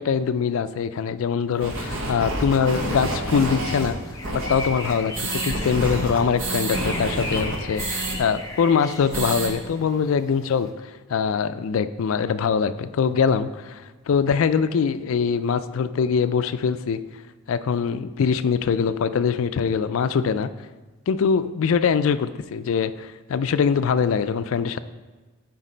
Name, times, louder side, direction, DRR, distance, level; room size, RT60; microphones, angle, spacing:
voice 1, 0.0-4.0 4.3-17.0 17.5-20.5 21.1-24.8, left 6 dB, 65° left, 13 dB, 0.3 m, -23 dB
sound 1, 1.6-8.2 8.5-8.6 8.9-9.5, right 1 dB, 60° right, 1.1 m, -28 dB
sound 2, 2.3-10.7, left 2 dB, 15° left, 0.6 m, -38 dB
8.4 x 4.0 x 5.1 m, 1.2 s
head